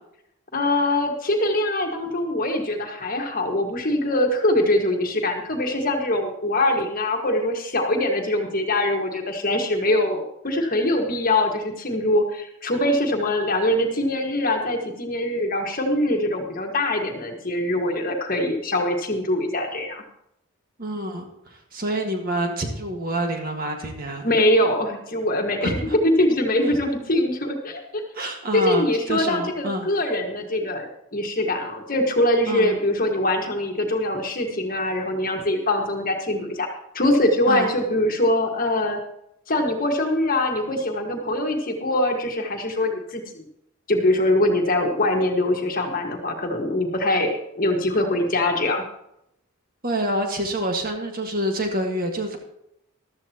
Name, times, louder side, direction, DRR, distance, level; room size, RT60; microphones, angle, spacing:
voice 1, 0.5-20.0 24.2-25.7 26.0-28.0 28.5-30.9 31.1-36.7 36.9-39.0 39.5-43.4 43.9-48.8, left 1 dB, 40° left, 2 dB, 1.6 m, -23 dB
voice 2, 20.8-24.2 25.6-26.0 26.6-26.8 28.1-29.9 32.5-32.7 37.5-37.7 49.8-52.4, right 1 dB, 40° right, 3 dB, 1.7 m, -27 dB
14.0 x 12.5 x 2.9 m, 0.79 s
head